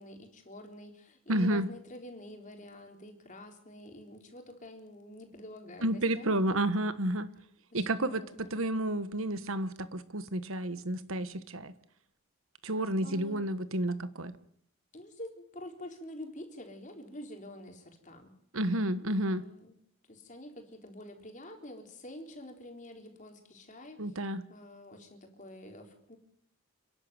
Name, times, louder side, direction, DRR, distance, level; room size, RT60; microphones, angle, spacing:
voice 1, 0.0-6.6 7.7-8.7 13.0-13.5 14.9-18.3 19.2-19.8 20.1-26.2, left 1 dB, 35° left, 3 dB, 4.0 m, -47 dB
voice 2, 1.3-1.7 5.8-7.3 7.7-11.7 12.6-14.3 18.5-19.4 24.0-24.4, right 1 dB, 70° right, 13 dB, 1.4 m, -31 dB
29.5 x 11.5 x 9.5 m, 0.70 s
head